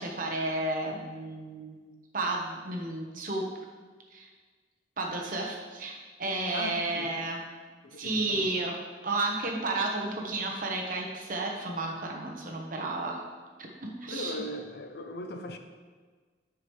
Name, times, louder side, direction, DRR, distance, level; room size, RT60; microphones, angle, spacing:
voice 1, 0.0-3.5 4.1-4.3 5.0-7.4 7.9-13.2 13.6-14.4, right 2 dB, 50° right, 0 dB, 1.1 m, -32 dB
voice 2, 6.5-7.2 7.8-8.5 14.1-15.6, left 1 dB, 60° left, 7 dB, 0.5 m, -38 dB
9.5 x 4.9 x 3.2 m, 1.5 s
head